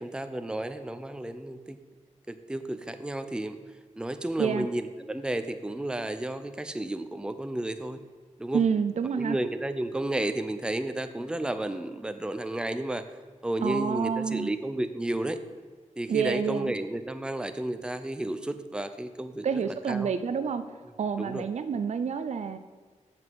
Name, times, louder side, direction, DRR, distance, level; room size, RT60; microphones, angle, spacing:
voice 1, 0.0-1.8 2.3-3.6 4.0-8.0 8.4-8.6 9.1-13.1 13.4-15.4 16.0-20.1 21.2-21.4, right 1 dB, 5° right, 10 dB, 0.5 m, -32 dB
voice 2, 8.5-9.4 13.6-14.5 16.1-16.7 19.4-20.6 21.0-22.6, right 6 dB, 65° right, 11 dB, 0.5 m, -28 dB
7.7 x 6.0 x 7.6 m, 1.4 s
wide cardioid pair, 115°, 13 cm